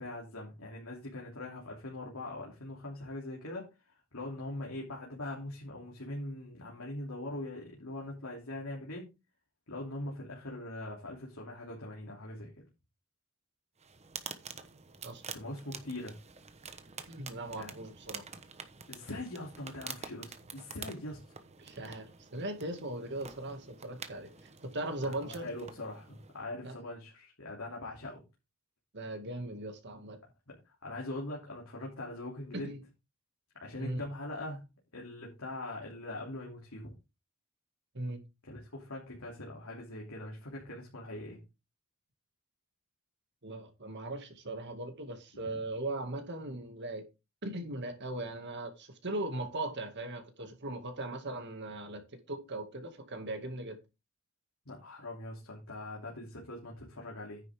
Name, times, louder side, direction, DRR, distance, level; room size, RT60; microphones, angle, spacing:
voice 1, 0.0-3.7 4.1-9.1 9.7-12.6 15.3-16.1 17.6-17.8 18.9-21.2 25.0-28.2 30.5-30.6 30.8-32.7 33.5-34.6 34.9-36.9 38.4-41.4 45.4-45.5 54.6-57.4, left 1 dB, 80° left, 3.1 m, -42 dB
sound 1, 13.8-26.4, right 6 dB, 30° right, 1.1 m, -48 dB
voice 2, 15.0-15.4 17.1-18.2 21.6-24.3 24.6-25.5 26.6-26.8 28.9-30.2 32.5-32.8 33.8-34.0 37.9-38.2 43.4-47.1 47.4-53.8, right 1 dB, 55° right, 2.3 m, -39 dB
9.8 x 8.0 x 3.7 m
head